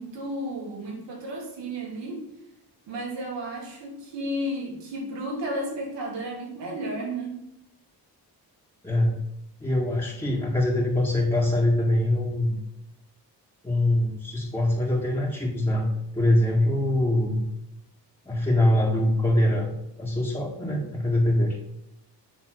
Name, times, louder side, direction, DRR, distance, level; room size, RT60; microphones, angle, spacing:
voice 1, 0.0-2.3 2.9-7.4, right 1 dB, 85° right, -2 dB, 2.9 m, -33 dB
voice 2, 8.8-9.2 9.6-12.6 13.6-15.9 16.1-17.4 18.3-19.7 20.0-21.6, left 1 dB, 10° left, -5 dB, 1.9 m, -23 dB
8.5 x 3.5 x 6.3 m, 0.84 s
cardioid pair, 70°, 42 cm